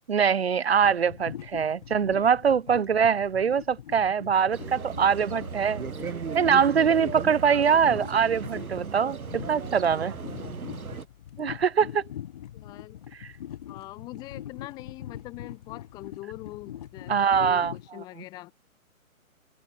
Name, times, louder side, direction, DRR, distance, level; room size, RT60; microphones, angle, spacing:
voice 1, 0.1-5.8 6.3-10.1 11.4-12.0 13.2-13.3 17.1-17.7, right 7 dB, 45° right, 2.7 m, -23 dB
sound 1, 0.8-17.9, left 11 dB, 25° left, 4.0 m, -43 dB
sound 2, 4.5-11.1, right 6 dB, 75° right, 2.2 m, -36 dB
voice 2, 12.5-13.0 13.7-18.5, left 18 dB, 10° left, 2.5 m, -42 dB
hypercardioid pair, 170°, 43 cm